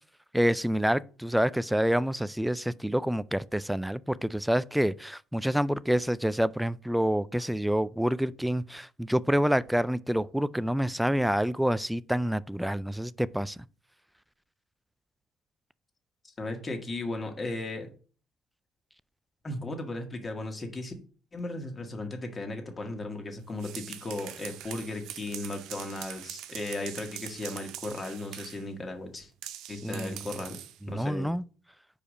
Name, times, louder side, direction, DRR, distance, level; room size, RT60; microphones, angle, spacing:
voice 1, 0.3-13.6 29.8-30.2 30.9-31.4, equal, 5° right, 0.3 m, -27 dB
voice 2, 16.4-17.9 19.4-20.9 21.3-29.3 29.7-30.6 30.9-31.3, left 2 dB, 30° left, 1.8 m, -36 dB
sound 1, 23.4-28.7 29.4-30.8, right 11 dB, 75° right, 0.6 m, -43 dB
4.9 x 4.9 x 6.1 m
cardioid pair, 90°, 0 cm